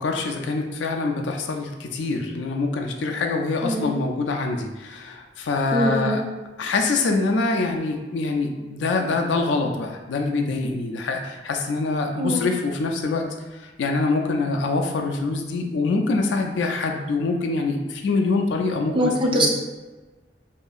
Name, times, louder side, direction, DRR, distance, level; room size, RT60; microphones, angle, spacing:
voice 1, 0.0-6.2 6.6-13.3 13.8-19.5, left 3 dB, 80° left, 3 dB, 0.4 m, -25 dB
voice 2, 5.7-6.3 12.2-12.5 18.9-19.5, right 1 dB, 30° right, 0 dB, 0.4 m, -23 dB
2.8 x 2.5 x 2.3 m, 1.2 s
head